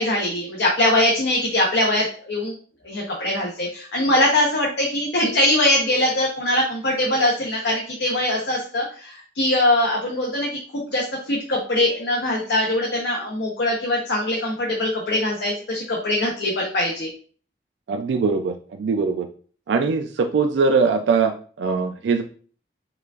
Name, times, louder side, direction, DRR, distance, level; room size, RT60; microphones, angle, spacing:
voice 1, 0.0-2.5 2.8-17.1, left 1 dB, 80° left, -2 dB, 0.8 m, -22 dB
voice 2, 17.9-19.3 19.7-22.2, right 4 dB, 90° right, 5 dB, 0.3 m, -21 dB
4.8 x 2.5 x 2.3 m, 0.42 s
head